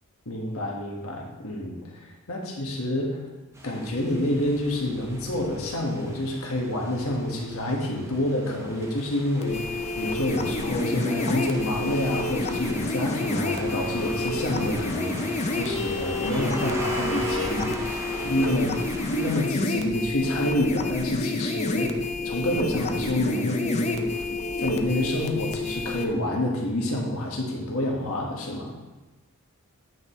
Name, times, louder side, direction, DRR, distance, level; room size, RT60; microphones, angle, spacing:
voice 1, 0.2-1.8 2.3-3.2 3.6-18.8 19.1-24.3 24.6-28.7, left 1 dB, 70° left, -1 dB, 1.5 m, -28 dB
sound 1, 3.5-19.5, right 1 dB, 15° right, 0.9 m, -39 dB
sound 2, 9.4-26.1, left 3 dB, 30° left, 0.5 m, -29 dB
9.1 x 5.7 x 3.1 m, 1.1 s
head